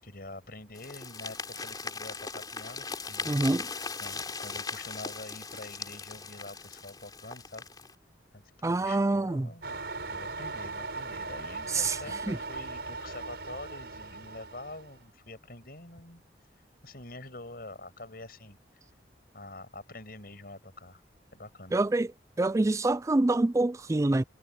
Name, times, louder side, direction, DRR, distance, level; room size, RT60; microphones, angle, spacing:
voice 1, 0.0-3.4 4.0-7.6 8.3-16.2 16.8-18.6 19.3-21.0 21.3-21.8, left 2 dB, 55° left, 7.2 m, -46 dB
sound 1, 0.8-7.9, left 4 dB, 20° left, 3.6 m, -39 dB
voice 2, 3.3-3.6 8.6-9.5 11.8-11.9 12.3-12.4 21.7-22.1 22.4-24.2, right 2 dB, 15° right, 0.3 m, -25 dB
sound 2, 9.6-14.9, right 3 dB, 65° right, 5.6 m, -39 dB
head